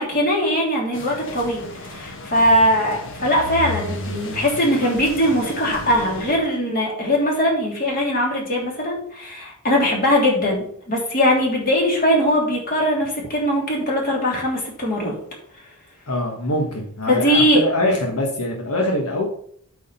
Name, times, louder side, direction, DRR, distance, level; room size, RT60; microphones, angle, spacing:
voice 1, 0.0-15.1 17.1-17.6, equal, 40° left, -2 dB, 3.2 m, -20 dB
sound 1, 0.9-6.4, left 2 dB, 60° left, 1.4 m, -34 dB
voice 2, 16.1-19.3, left 1 dB, 85° left, 1 dB, 1.4 m, -23 dB
8.4 x 4.9 x 5.6 m, 0.64 s
head